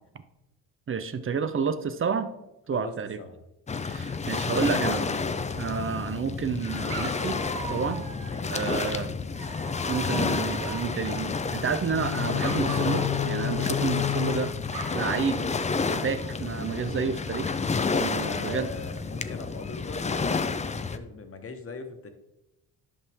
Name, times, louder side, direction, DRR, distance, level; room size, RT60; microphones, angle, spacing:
voice 1, 0.9-2.3 2.7-3.2 3.8-5.2 5.6-7.4 7.7-8.0 8.5-9.1 9.9-14.5 14.9-15.4 15.9-17.6 17.9-18.7, right 6 dB, 35° right, 10 dB, 0.8 m, -30 dB
voice 2, 2.7-3.4 8.2-8.8 18.2-22.1, left 3 dB, 35° left, 6 dB, 1.4 m, -41 dB
Waves surf, 3.7-21.0, left 4 dB, 20° left, 0.5 m, -30 dB
Dog, 5.4-6.2 6.9-8.5 9.3-11.5 12.4-14.3 14.7-15.1, right 5 dB, 80° right, 2.5 m, -41 dB
sound 1, 11.9-15.9, left 16 dB, 70° left, 0.5 m, -32 dB
11.0 x 5.5 x 3.5 m, 0.93 s
supercardioid pair, 80°, 38 cm